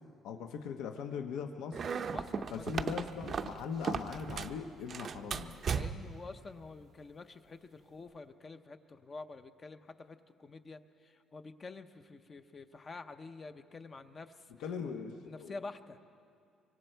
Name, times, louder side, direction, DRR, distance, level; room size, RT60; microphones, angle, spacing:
voice 1, 0.2-1.8 2.5-5.6 14.6-15.6, left 6 dB, 80° left, 5 dB, 1.1 m, -40 dB
sound 1, 1.7-4.6 4.9-6.2, right 6 dB, 35° right, 0.6 m, -36 dB
voice 2, 2.1-2.6 5.7-14.5 14.8-16.0, left 3 dB, 25° left, 9 dB, 0.7 m, -48 dB
25.0 x 25.0 x 4.5 m, 2.4 s
cardioid pair, 155°, 0 cm